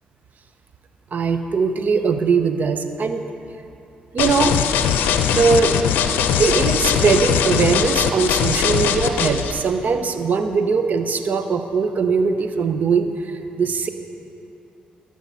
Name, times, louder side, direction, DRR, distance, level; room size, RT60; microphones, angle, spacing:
voice 1, 1.1-3.3 4.1-4.6 5.4-5.8 6.4-13.1 13.6-13.9, right 5 dB, 55° right, 8 dB, 0.7 m, -20 dB
sound 1, 4.2-9.5, left 8 dB, 85° left, 0.5 m, -20 dB
12.5 x 6.3 x 5.5 m, 2.7 s
supercardioid pair, 60°, 3 cm